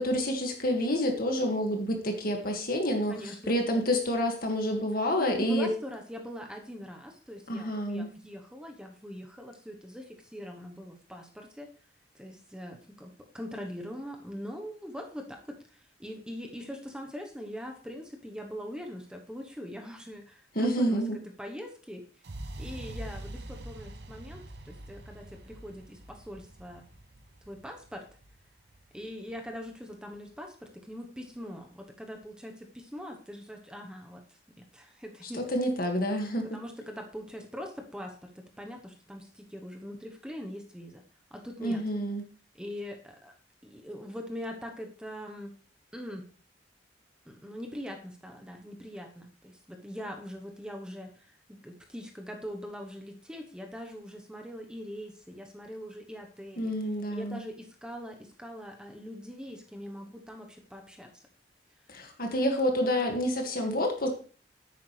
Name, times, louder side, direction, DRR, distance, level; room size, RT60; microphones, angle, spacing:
voice 1, 0.0-5.7 7.5-8.1 20.6-21.2 35.3-36.6 41.6-42.2 56.6-57.4 61.9-64.1, equal, 55° left, 3 dB, 2.0 m, -28 dB
voice 2, 3.1-3.6 5.2-11.7 12.1-21.0 21.4-22.0 22.6-26.8 27.4-28.0 28.9-34.2 34.6-35.4 36.5-41.0 41.3-41.8 42.5-43.3 43.6-45.5 45.9-46.3 47.3-56.7 57.1-61.2, equal, 5° right, 3 dB, 1.0 m, -42 dB
sound 1, 22.2-30.2, right 1 dB, 65° right, 0.9 m, -45 dB
10.5 x 8.6 x 3.3 m, 0.39 s
head